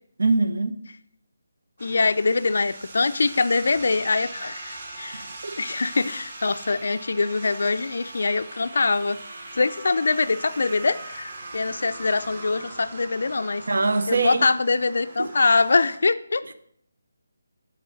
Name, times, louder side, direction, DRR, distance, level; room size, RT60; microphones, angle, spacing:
voice 1, 0.2-0.7 5.4-5.6 13.7-14.5 15.2-15.3, right 3 dB, 65° right, 0.7 m, -23 dB
voice 2, 1.8-5.3 5.6-9.2 9.5-13.6 14.1-16.4, left 3 dB, 60° left, 0.3 m, -23 dB
sound 1, 1.8-16.0, right 2 dB, 30° right, 0.8 m, -41 dB
6.8 x 4.0 x 6.2 m
hypercardioid pair, 175°, 0 cm